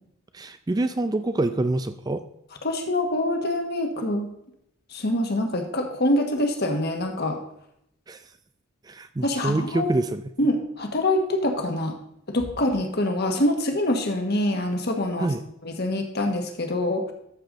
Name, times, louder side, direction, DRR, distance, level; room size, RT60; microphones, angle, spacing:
voice 1, 0.3-2.2 8.1-8.2 8.8-10.2 15.2-15.4, right 2 dB, 20° right, 10 dB, 0.3 m, -26 dB
voice 2, 2.6-4.3 4.9-7.4 9.2-9.9 10.4-12.0 12.3-15.3 15.6-17.1, left 1 dB, 50° left, 5 dB, 1.4 m, -25 dB
13.0 x 6.9 x 3.9 m, 0.77 s
head